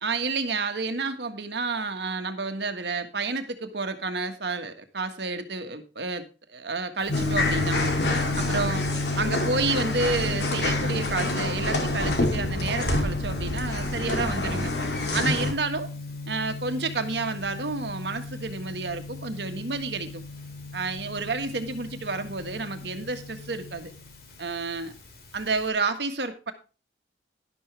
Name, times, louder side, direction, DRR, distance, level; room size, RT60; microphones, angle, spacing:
voice 1, 0.0-7.9 8.3-8.9 9.2-14.7 15.1-15.9 16.3-20.2 20.7-23.9 24.4-24.9 25.3-26.5, right 3 dB, 75° right, 8 dB, 1.5 m, -30 dB
Gong, 7.0-25.7, left 2 dB, 55° left, 2.4 m, -34 dB
sound 1, 7.1-15.5, left 2 dB, 70° left, 2.5 m, -28 dB
11.5 x 11.0 x 3.3 m, 0.32 s
head